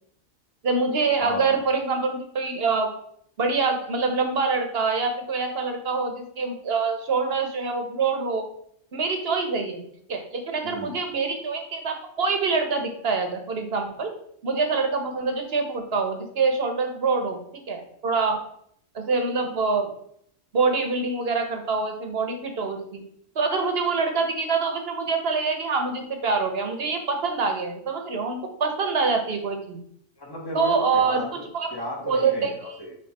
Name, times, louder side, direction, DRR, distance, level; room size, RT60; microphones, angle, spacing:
voice 1, 0.6-2.9 3.4-8.4 8.9-14.1 14.4-18.4 18.9-19.9 20.5-23.0 23.3-29.8 30.5-31.3 31.5-31.7 32.1-32.5, right 4 dB, 55° right, 4 dB, 1.2 m, -25 dB
voice 2, 1.2-1.6 10.6-11.0 30.2-32.9, left 1 dB, 20° left, -2 dB, 1.5 m, -35 dB
8.8 x 3.1 x 4.2 m, 0.69 s
omnidirectional pair, 1.3 m